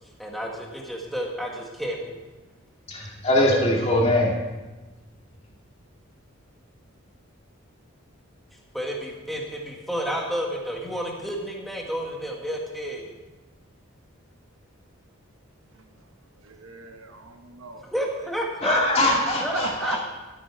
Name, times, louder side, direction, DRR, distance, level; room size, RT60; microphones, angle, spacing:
voice 1, 0.2-2.2 8.7-13.1 17.9-19.1 19.4-20.0, equal, ahead, -1 dB, 1.6 m, -31 dB
voice 2, 2.9-4.3 18.6-20.0, left 1 dB, 30° left, -3 dB, 2.3 m, -22 dB
voice 3, 16.5-17.8 19.5-20.0, right 3 dB, 75° right, 5 dB, 1.2 m, -37 dB
13.0 x 9.0 x 4.7 m, 1.2 s
head